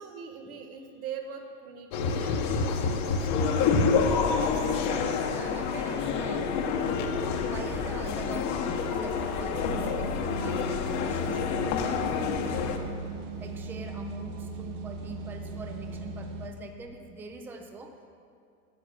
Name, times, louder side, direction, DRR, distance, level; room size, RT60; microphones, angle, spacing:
voice 1, 0.0-3.5 3.8-4.1, right 6 dB, 90° right, 4 dB, 1.5 m, -42 dB
sound 1, 1.9-12.8, left 5 dB, 40° left, 1.0 m, -28 dB
sound 2, 3.6-8.6, left 3 dB, 80° left, 2.1 m, -47 dB
voice 2, 4.7-6.6 7.5-12.5 13.4-18.1, right 2 dB, 5° right, 4 dB, 0.4 m, -43 dB
sound 3, 9.5-16.5, right 2 dB, 60° right, 1.2 m, -38 dB
10.5 x 7.4 x 6.6 m, 2.4 s
supercardioid pair, 135°, 42 cm